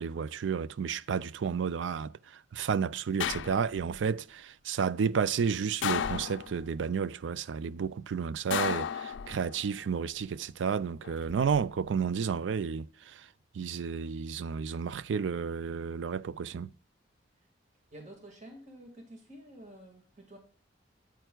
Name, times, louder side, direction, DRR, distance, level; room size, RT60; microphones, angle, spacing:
voice 1, 0.0-2.1 2.5-13.2 13.6-16.7, right 6 dB, 80° right, 0.4 m, -31 dB
sound 1, 3.2-4.0 5.8-6.8 8.5-9.6 11.0-11.6, left 8 dB, 90° left, 0.4 m, -33 dB
voice 2, 17.9-20.4, right 1 dB, 40° right, 1.9 m, -50 dB
9.0 x 8.9 x 2.3 m
head